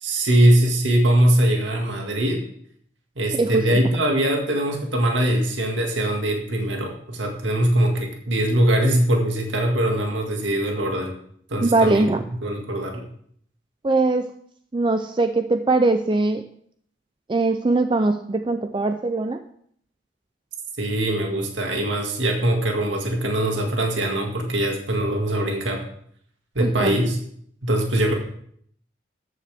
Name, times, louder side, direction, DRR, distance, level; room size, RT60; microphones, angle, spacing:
voice 1, 0.0-2.4 3.2-11.1 11.5-12.1 12.4-13.0 20.8-25.8 26.6-27.2 27.6-28.1, right 1 dB, 90° right, 2 dB, 2.0 m, -22 dB
voice 2, 3.3-3.6 11.6-12.2 13.8-14.3 14.7-16.4 17.3-19.4 26.6-27.0, right 3 dB, 25° right, 8 dB, 0.4 m, -21 dB
13.5 x 9.3 x 3.4 m, 0.65 s
head